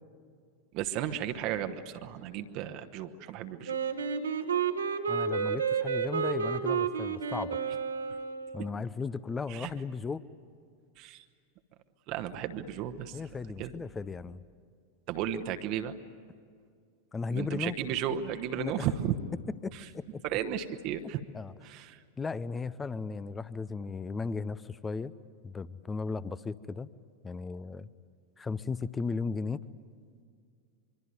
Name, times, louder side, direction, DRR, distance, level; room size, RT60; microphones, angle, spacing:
voice 1, 0.7-3.8 9.5-9.7 11.0-11.2 12.1-13.2 13.6-13.7 15.1-15.9 17.3-19.2 19.7-19.8 20.2-21.2 21.6-22.0, right 10 dB, 40° right, 8 dB, 1.1 m, -34 dB
Wind instrument woodwind instrument, 3.7-8.7, right 6 dB, 70° right, 1.5 m, -31 dB
voice 2, 5.1-7.6 8.5-10.2 13.1-14.4 17.1-17.7 18.6-18.9 19.6-20.2 21.3-21.5 22.2-25.1 25.4-26.9 27.2-27.9 28.4-29.7, left 4 dB, 15° left, 18 dB, 0.6 m, -36 dB
24.5 x 24.0 x 9.3 m, 2.2 s
figure-of-eight pair, 90°, 0 cm